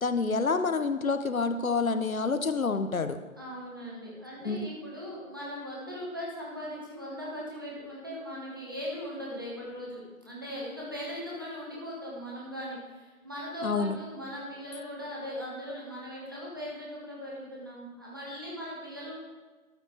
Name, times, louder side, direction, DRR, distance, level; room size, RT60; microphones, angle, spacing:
voice 1, 0.0-3.2 4.4-4.7 13.6-14.0, left 4 dB, 70° left, 10 dB, 0.7 m, -28 dB
voice 2, 3.4-19.1, equal, 15° right, -6 dB, 1.1 m, -39 dB
12.5 x 4.8 x 4.6 m, 1.3 s
figure-of-eight pair, 160°, 43 cm